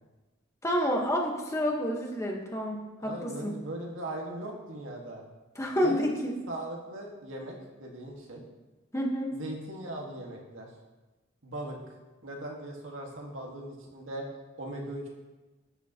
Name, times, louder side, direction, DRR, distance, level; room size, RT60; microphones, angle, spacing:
voice 1, 0.6-3.5 5.5-6.4 8.9-9.3, equal, 15° left, 0 dB, 1.3 m, -29 dB
voice 2, 3.0-5.2 5.8-8.4 9.3-10.7 11.4-11.8 12.2-14.3 14.6-15.1, right 1 dB, 75° right, -1 dB, 1.8 m, -39 dB
13.0 x 9.2 x 3.0 m, 1.2 s
head